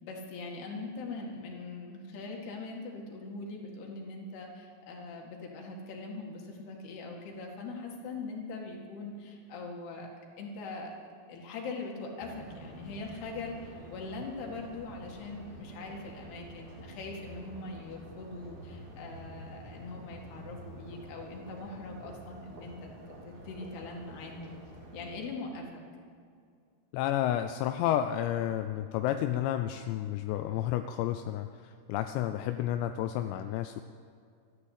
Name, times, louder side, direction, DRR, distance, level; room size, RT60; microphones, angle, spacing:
voice 1, 0.0-10.1 10.4-10.9 11.3-24.6 24.9-25.8, left 3 dB, 70° left, 0 dB, 4.0 m, -42 dB
sound 1, 12.2-25.3, right 1 dB, 55° right, 4.9 m, -48 dB
voice 2, 26.9-33.8, left 12 dB, 90° left, 7 dB, 2.8 m, -31 dB
13.5 x 11.0 x 8.3 m, 2.3 s
omnidirectional pair, 5.0 m